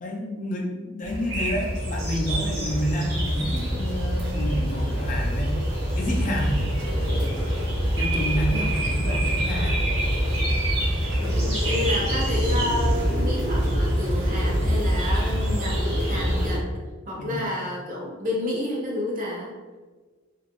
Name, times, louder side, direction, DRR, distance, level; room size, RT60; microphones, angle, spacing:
voice 1, 0.0-5.5 5.9-6.7 7.9-10.0 17.2-17.4, equal, 40° left, -1 dB, 0.5 m, -29 dB
sound 1, 1.0-16.6, equal, 65° right, 1.2 m, -25 dB
voice 2, 8.5-9.2 11.2-16.6 17.1-19.5, left 1 dB, 45° right, -3 dB, 0.8 m, -30 dB
2.9 x 2.5 x 3.0 m, 1.4 s
head